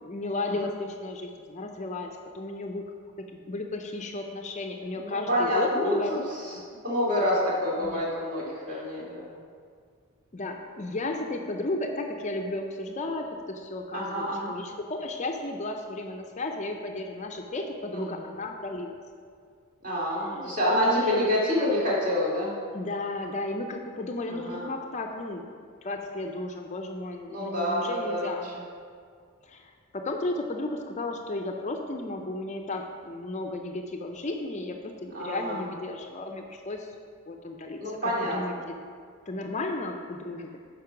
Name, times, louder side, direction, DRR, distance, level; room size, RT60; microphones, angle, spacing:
voice 1, 0.0-2.8 3.3-6.1 6.5-6.6 7.8-8.0 8.7-8.9 10.3-19.0 20.1-21.3 22.7-25.4 25.8-28.5 29.4-36.9 37.3-38.7 39.3-40.6, left 2 dB, 35° left, 3 dB, 0.5 m, -34 dB
voice 2, 5.0-6.2 6.4-6.5 6.8-9.4 13.9-14.5 17.9-18.2 19.8-22.6 24.3-24.7 27.3-28.3 35.1-35.6 37.8-38.4, left 1 dB, 40° right, -5 dB, 2.5 m, -27 dB
8.7 x 5.3 x 5.8 m, 2.1 s
head